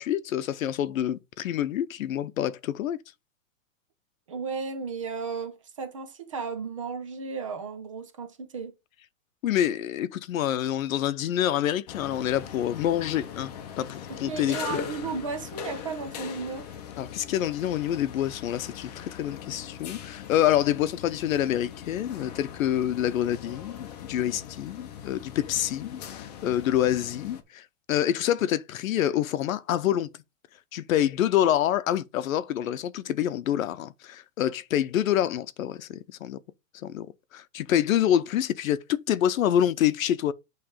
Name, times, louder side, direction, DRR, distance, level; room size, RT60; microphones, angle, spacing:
voice 1, 0.0-3.0 9.4-13.5 13.8-14.9 17.0-30.1 30.7-36.4 36.8-37.1 37.3-40.3, left 11 dB, 75° left, 0.8 m, -27 dB
voice 2, 4.3-8.7 14.1-16.7, right 5 dB, 25° right, 0.5 m, -34 dB
sound 1, 11.9-27.4, left 8 dB, 30° left, 0.7 m, -41 dB
8.7 x 3.3 x 5.1 m
supercardioid pair, 180°, 41 cm